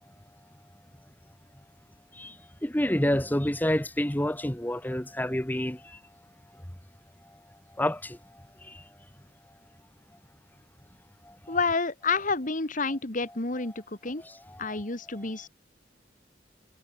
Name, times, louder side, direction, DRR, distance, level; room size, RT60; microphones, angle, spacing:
voice 1, 2.6-6.0 7.8-8.8 11.2-11.6 14.2-14.8 15.1-15.3, left 1 dB, 10° left, 1.6 m, -29 dB
voice 2, 11.5-14.2 14.6-15.5, left 4 dB, 50° left, 2.1 m, -29 dB
head